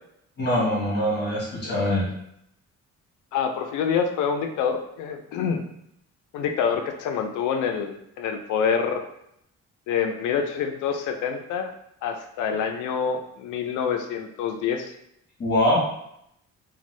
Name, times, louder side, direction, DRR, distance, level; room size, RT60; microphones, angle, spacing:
voice 1, 0.4-2.1 15.4-15.8, left 1 dB, 35° left, -5 dB, 1.3 m, -23 dB
voice 2, 3.3-5.6 6.3-9.0 9.9-11.7 12.0-14.9, left 7 dB, 80° left, 5 dB, 0.5 m, -26 dB
2.5 x 2.3 x 3.1 m, 0.76 s
cardioid pair, 90°, 30 cm